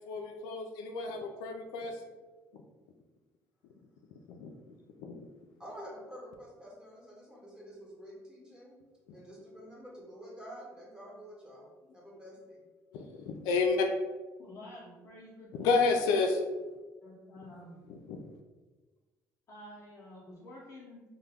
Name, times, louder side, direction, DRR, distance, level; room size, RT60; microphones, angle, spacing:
voice 1, 0.1-2.0 4.3-4.5 5.0-5.2 12.9-13.9 15.6-16.4 17.9-18.2, left 4 dB, 90° left, 4 dB, 0.4 m, -30 dB
voice 2, 5.6-8.8 9.1-11.7 11.9-12.6, equal, 10° right, -5 dB, 1.2 m, -48 dB
voice 3, 11.9-12.3 12.9-13.1 14.4-15.9 17.0-17.8 19.5-21.0, left 1 dB, 45° left, -7 dB, 0.7 m, -50 dB
2.9 x 2.2 x 3.4 m, 1.3 s
cardioid pair, 100°, 7 cm